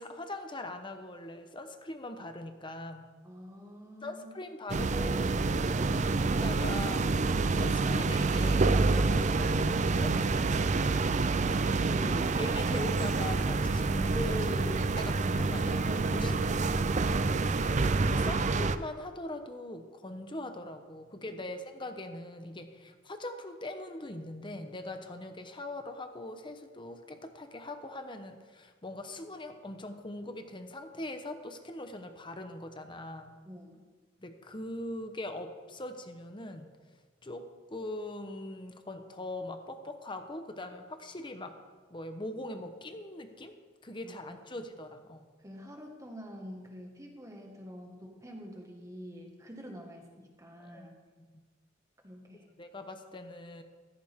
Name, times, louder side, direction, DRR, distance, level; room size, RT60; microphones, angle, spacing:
voice 1, 0.0-3.1 4.0-5.9 6.2-10.6 11.8-16.4 17.3-17.6 18.0-33.3 34.2-36.7 37.2-41.6 41.9-43.5 43.8-45.3 50.6-50.9 51.3-51.4 52.6-53.6, left 1 dB, 25° left, 7 dB, 1.0 m, -41 dB
voice 2, 3.2-4.4 16.1-17.0 33.5-33.8 44.0-44.4 45.4-50.9 52.0-52.5, equal, 15° right, 1 dB, 1.8 m, -47 dB
sound 1, 4.7-18.8, right 3 dB, 40° right, 0.5 m, -27 dB
15.0 x 14.0 x 3.7 m, 1.5 s
head